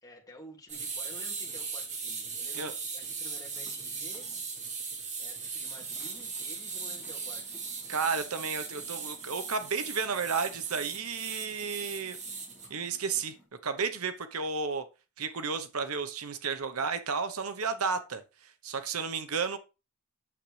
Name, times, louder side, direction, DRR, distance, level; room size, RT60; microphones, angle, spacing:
voice 1, 0.0-4.3 5.2-7.4, left 1 dB, 15° left, 2.4 m, -51 dB
sound 1, 0.7-12.7, right 5 dB, 35° right, 1.9 m, -38 dB
sound 2, 3.5-4.5 4.8-4.9 5.3-5.4 5.8-13.5, equal, 5° right, 3.8 m, -60 dB
voice 2, 7.9-12.2 12.7-13.3 13.6-14.8 15.2-19.6, right 5 dB, 80° right, 1.0 m, -32 dB
9.0 x 7.5 x 3.3 m
head